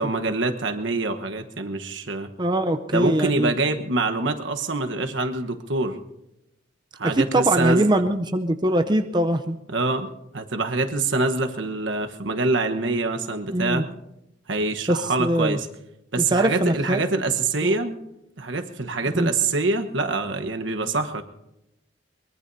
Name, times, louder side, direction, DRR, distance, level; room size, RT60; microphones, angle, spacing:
voice 1, 0.0-2.3 2.9-6.0 7.0-8.0 9.7-13.9 14.5-15.7 16.1-18.0 18.4-21.2, right 3 dB, 85° right, 6 dB, 1.2 m, -25 dB
voice 2, 2.4-3.5 7.0-9.6 13.5-13.8 14.9-15.6 16.2-17.0 17.6-17.7 19.1-19.3, right 1 dB, 25° right, 7 dB, 0.7 m, -22 dB
22.5 x 22.0 x 2.7 m, 0.87 s
head